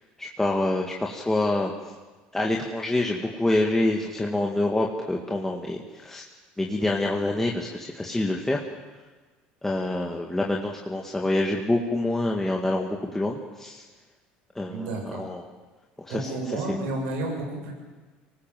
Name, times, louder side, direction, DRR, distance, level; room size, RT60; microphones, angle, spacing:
voice 1, 0.2-1.7 2.3-6.2 6.6-8.6 9.6-13.8 14.6-15.5 16.1-16.9, left 2 dB, 10° left, -1 dB, 2.0 m, -26 dB
voice 2, 14.7-15.3 16.1-17.7, right 2 dB, 80° right, 2 dB, 7.1 m, -31 dB
25.0 x 19.5 x 7.7 m, 1.3 s
supercardioid pair, 100°, 4 cm